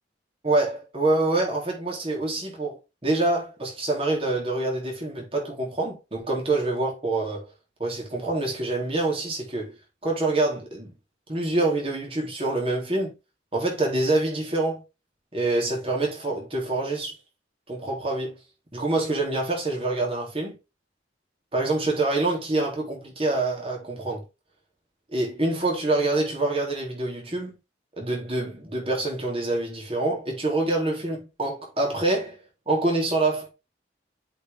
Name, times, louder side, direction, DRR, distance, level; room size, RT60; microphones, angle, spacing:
voice 1, 0.4-7.5 7.8-9.7 10.0-10.9 11.3-13.1 13.5-14.8 15.3-17.2 17.7-18.4 18.7-20.6 21.5-24.2 25.1-27.6 28.0-32.4 32.7-33.5, right 2 dB, 30° right, 3.7 m, -26 dB
7.8 x 5.7 x 3.6 m
head